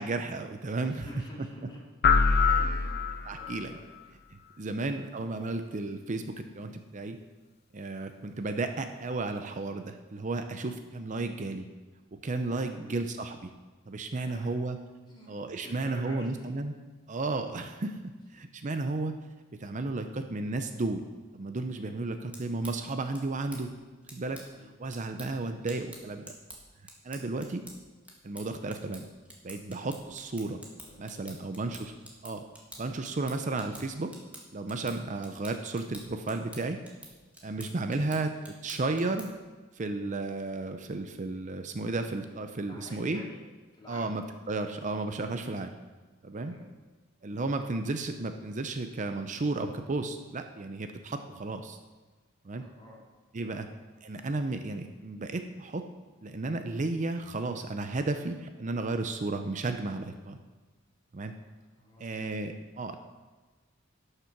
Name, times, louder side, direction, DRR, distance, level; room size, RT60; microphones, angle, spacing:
voice 1, 0.0-1.1 2.3-2.6 3.2-3.8 4.3-7.2 7.7-11.7 12.1-13.5 13.9-14.8 15.3-16.8 17.1-19.1 19.5-21.1 21.3-23.7 24.1-24.4 24.8-26.2 27.0-27.6 28.2-29.1 29.4-30.6 31.0-31.9 32.2-32.4 32.8-34.1 34.5-36.8 37.4-39.3 39.7-43.2 43.9-45.7 46.2-46.5 47.2-51.8 52.4-52.6 53.3-53.7 54.0-55.9 56.2-60.4 61.1-61.3 62.0-63.0, right 3 dB, 40° right, 7 dB, 0.6 m, -33 dB
voice 2, 0.9-1.8 2.5-3.0 3.3-3.9 4.6-4.8 12.6-13.0 14.2-14.5 15.1-15.3 15.6-16.3 24.5-24.7 30.8-31.5 42.6-43.4 43.7-44.1 45.3-45.6 46.4-46.6 52.5-53.0 53.5-53.6 61.7-62.2, left 1 dB, 25° left, -4 dB, 2.6 m, -49 dB
sound 1, 2.0-3.6, left 5 dB, 50° left, 0.6 m, -24 dB
sound 2, 22.3-39.5, right 1 dB, 5° right, 1.8 m, -50 dB
12.0 x 6.6 x 5.9 m, 1.3 s
head